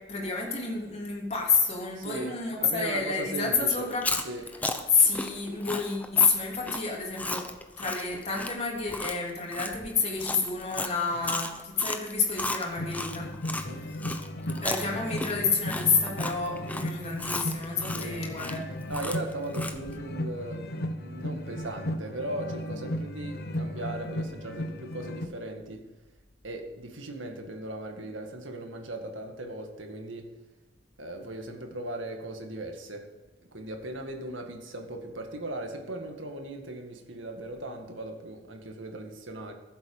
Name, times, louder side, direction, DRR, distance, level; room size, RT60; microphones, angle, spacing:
voice 1, 0.0-4.1 4.9-7.5 7.8-13.3 13.6-13.9 14.6-18.6, left 5 dB, 35° left, -2 dB, 3.2 m, -29 dB
voice 2, 1.9-3.9 4.2-4.4 13.5-13.8 17.9-18.2 18.9-20.6 20.9-25.8 26.4-30.3 31.0-33.1 33.5-39.5, right 1 dB, 75° right, 4 dB, 1.9 m, -38 dB
Chewing mastication, 3.8-13.7 14.0-20.0, left 2 dB, 10° left, 0.8 m, -35 dB
sound 1, 12.8-25.3, left 1 dB, 55° left, 1.1 m, -35 dB
14.5 x 8.0 x 5.5 m, 1.2 s
head